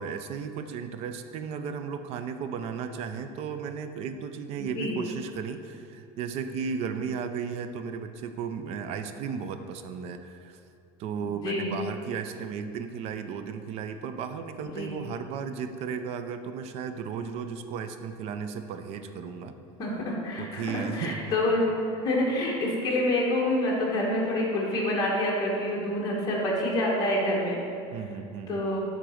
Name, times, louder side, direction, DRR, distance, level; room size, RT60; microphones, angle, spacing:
voice 1, 0.0-10.6 11.0-19.5 20.4-21.4 27.9-28.6, right 6 dB, 45° right, 9 dB, 0.4 m, -35 dB
voice 2, 19.8-21.6 22.0-27.6 28.5-28.8, left 1 dB, 25° left, -4 dB, 1.3 m, -27 dB
7.5 x 3.8 x 6.3 m, 2.5 s
cardioid pair, 155°, 14 cm